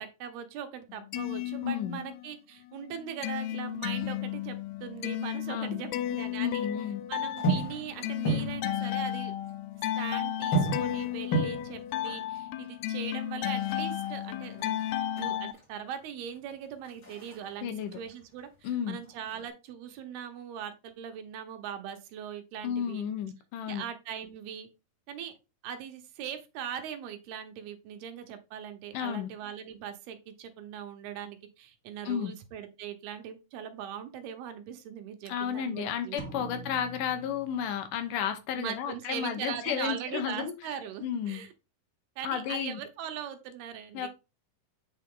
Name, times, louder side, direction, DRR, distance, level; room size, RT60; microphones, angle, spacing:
voice 1, 0.0-6.7 7.1-9.3 10.0-14.8 15.2-23.0 23.7-24.7 25.1-25.3 25.6-36.5 38.6-41.5 42.2-44.1, right 9 dB, 80° right, 3.0 m, -40 dB
sound 1, 0.9-2.3 2.7-15.5, left 12 dB, 90° left, 2.7 m, -34 dB
voice 2, 1.6-2.0 5.5-5.8 6.4-7.0 17.6-18.0 18.6-19.0 22.6-23.8 28.9-29.3 32.1-32.3 35.3-40.5 41.0-41.4 42.2-42.8 43.9-44.1, left 8 dB, 70° left, 2.2 m, -32 dB
sound 2, 3.8-5.5 5.8-6.7 7.2-9.2 9.5-9.6 9.8-15.7 16.1-18.7 18.9-19.5, right 3 dB, 30° left, 3.7 m, -35 dB
sound 3, 36.2-38.2, right 2 dB, 60° right, 1.1 m, -45 dB
8.4 x 5.0 x 3.7 m
omnidirectional pair, 4.5 m